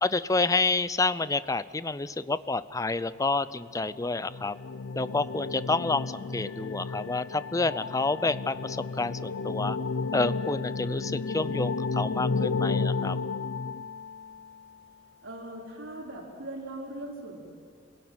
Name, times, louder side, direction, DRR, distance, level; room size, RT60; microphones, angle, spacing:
voice 1, 0.0-4.6 5.0-9.8 10.1-13.2, left 3 dB, 15° left, 15 dB, 0.5 m, -29 dB
sound 1, 3.7-14.5, left 4 dB, 70° left, 0.5 m, -32 dB
voice 2, 15.2-17.4, right 1 dB, 85° right, -2 dB, 4.3 m, -40 dB
26.5 x 17.0 x 9.4 m, 2.1 s
head